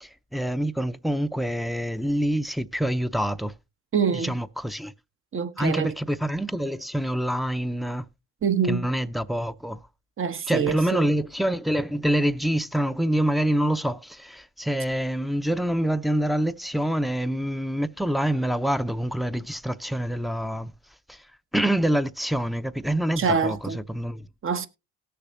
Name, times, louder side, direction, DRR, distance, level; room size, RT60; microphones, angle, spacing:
voice 1, 0.0-3.5 4.1-4.9 5.6-8.1 8.7-9.8 10.5-20.7 21.1-21.2 21.5-24.3, right 1 dB, ahead, 0.6 m, -26 dB
voice 2, 3.9-4.3 5.3-5.9 8.4-8.8 10.2-11.1 23.2-23.8 24.4-24.7, right 6 dB, 45° right, 1.1 m, -25 dB
18.5 x 6.8 x 2.7 m
cardioid pair, 90°, 30 cm